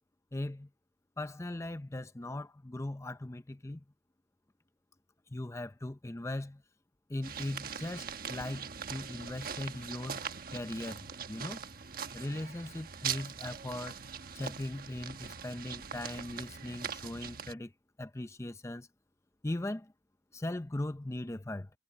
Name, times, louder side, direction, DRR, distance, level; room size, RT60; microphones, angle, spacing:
voice 1, 0.3-0.7 1.2-3.8 5.3-6.6 7.1-10.2 10.5-11.7 12.1-14.0 14.3-17.7 18.0-18.9 19.4-19.9 20.3-21.7, left 1 dB, 15° left, 0.6 m, -39 dB
sound 1, 7.2-17.5, right 7 dB, 55° right, 1.3 m, -41 dB
head